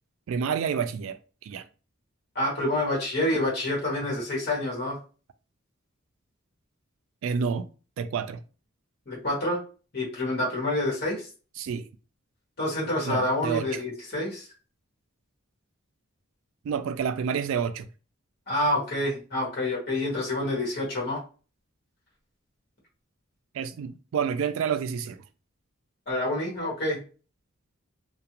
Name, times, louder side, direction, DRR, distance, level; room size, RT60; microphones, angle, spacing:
voice 1, 0.3-1.7 7.2-7.7 8.0-8.4 11.6-11.9 13.1-13.7 16.6-17.9 23.5-25.2, right 6 dB, 75° right, 0.3 m, -29 dB
voice 2, 2.3-5.0 9.1-9.6 9.9-11.3 12.6-14.5 18.5-21.2 26.1-27.0, left 1 dB, 50° left, 1.1 m, -27 dB
2.4 x 2.1 x 2.8 m
head